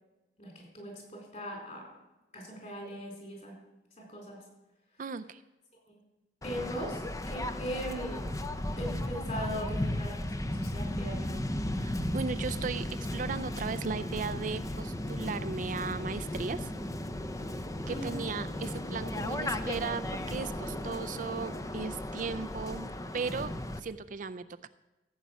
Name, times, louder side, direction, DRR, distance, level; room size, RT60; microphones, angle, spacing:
voice 1, 0.4-1.8 2.3-3.6 4.0-4.4 5.9-6.0 6.4-8.2 8.8-11.4 17.9-18.2, equal, 40° left, 1 dB, 4.3 m, -39 dB
voice 2, 5.0-5.4 11.7-16.7 17.9-23.5 23.8-24.4, right 5 dB, 45° right, 12 dB, 0.4 m, -36 dB
Waves surf, 6.4-23.8, left 1 dB, 20° left, 0.6 m, -35 dB
15.0 x 8.2 x 6.2 m, 1.0 s
head